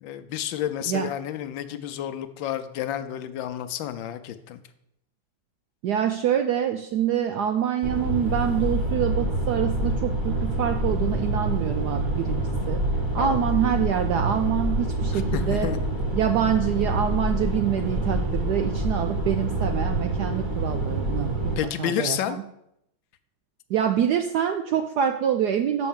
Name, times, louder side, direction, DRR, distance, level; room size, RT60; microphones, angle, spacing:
voice 1, 0.0-4.6 13.2-13.5 15.1-15.8 21.6-22.4, left 11 dB, 75° left, 10 dB, 1.3 m, -30 dB
voice 2, 5.8-12.8 13.1-15.7 16.1-22.4 23.7-25.9, right 9 dB, 80° right, 6 dB, 0.9 m, -26 dB
sound 1, 7.8-21.6, right 1 dB, 15° right, 1.5 m, -26 dB
6.4 x 5.6 x 7.2 m, 0.79 s
omnidirectional pair, 2.2 m